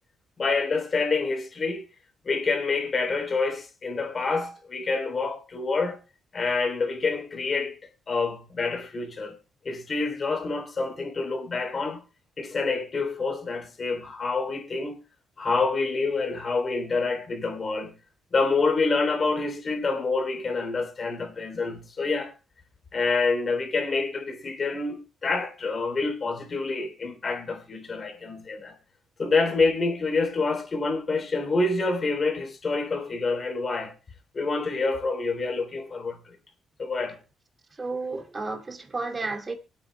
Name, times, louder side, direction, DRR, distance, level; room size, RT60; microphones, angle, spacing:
voice 1, 0.4-1.8 2.2-6.0 6.3-7.8 8.1-9.3 9.6-12.0 12.4-15.0 15.4-17.9 18.3-22.3 22.9-28.7 29.2-33.9 34.3-36.3 36.8-37.2, left 3 dB, 40° left, 3.3 m, -27 dB
voice 2, 37.8-39.5, right 3 dB, 25° right, 2.6 m, -32 dB
24.0 x 8.9 x 2.2 m
cardioid pair, 90°, 0 cm